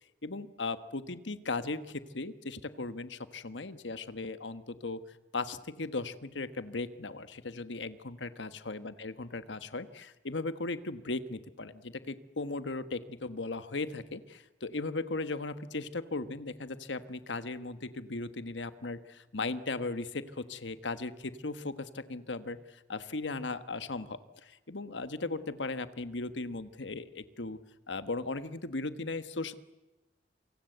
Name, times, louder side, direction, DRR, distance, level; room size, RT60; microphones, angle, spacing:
voice 1, 0.2-5.0 5.3-27.6 27.9-29.5, left 3 dB, 80° left, 12 dB, 1.3 m, -37 dB
27.0 x 24.5 x 8.0 m, 1.0 s
head